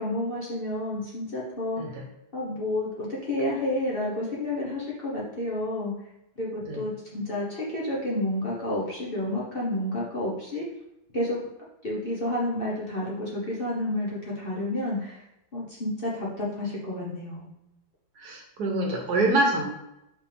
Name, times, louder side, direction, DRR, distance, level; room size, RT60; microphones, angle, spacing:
voice 1, 0.0-1.8 2.3-5.9 6.4-10.6 11.1-11.4 11.8-15.2 15.5-17.5, left 1 dB, 35° left, -6 dB, 1.2 m, -30 dB
voice 2, 18.2-19.6, right 2 dB, 60° right, 1 dB, 1.4 m, -25 dB
5.5 x 5.2 x 3.5 m, 0.86 s
omnidirectional pair, 2.1 m